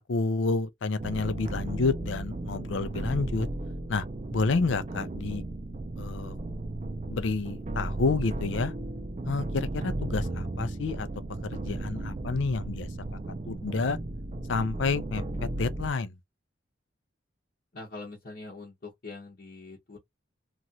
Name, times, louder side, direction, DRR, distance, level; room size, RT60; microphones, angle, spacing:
voice 1, 0.1-3.5 3.9-4.0 4.3-5.4 6.0-6.3 7.1-8.7 9.2-11.1 11.4-12.9 13.5-14.0 14.5-15.2 15.6-16.1, left 3 dB, 80° left, 0.5 m, -29 dB
sound 1, 1.0-15.9, right 2 dB, 35° right, 0.4 m, -35 dB
voice 2, 17.7-20.0, left 3 dB, 50° left, 0.9 m, -43 dB
3.0 x 2.4 x 2.7 m
head